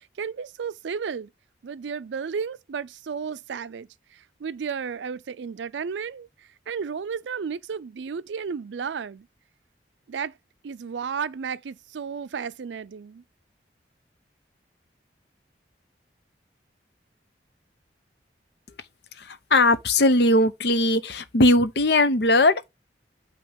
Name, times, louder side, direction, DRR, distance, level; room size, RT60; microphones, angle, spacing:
voice 1, 0.2-1.3 1.6-3.9 4.4-6.3 6.7-9.3 10.1-10.3 10.6-13.2, right 6 dB, 85° right, 0.4 m, -33 dB
voice 2, 19.2-22.7, left 2 dB, 65° left, 0.7 m, -19 dB
8.6 x 3.0 x 5.1 m
head